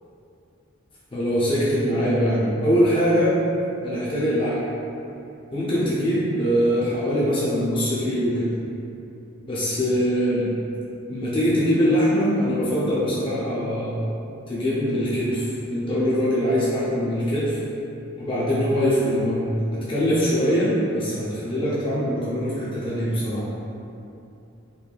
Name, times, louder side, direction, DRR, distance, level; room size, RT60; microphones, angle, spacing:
voice 1, 1.1-3.3 3.8-4.6 5.5-8.5 9.5-10.5 11.1-14.0 14.5-17.6 18.2-19.5 19.7-23.4, equal, 25° left, -9 dB, 0.5 m, -22 dB
3.0 x 2.6 x 2.2 m, 2.7 s
head